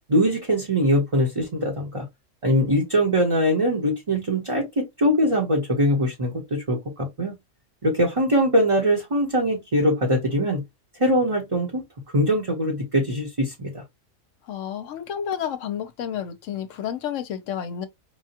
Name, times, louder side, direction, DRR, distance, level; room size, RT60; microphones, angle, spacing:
voice 1, 0.1-2.0 2.4-7.4 7.8-10.6 11.0-11.8 12.1-13.8, equal, 25° right, 1.0 m, -22 dB
voice 2, 14.5-17.9, left 9 dB, 65° left, 1.0 m, -30 dB
4.8 x 2.3 x 2.7 m
omnidirectional pair, 1.4 m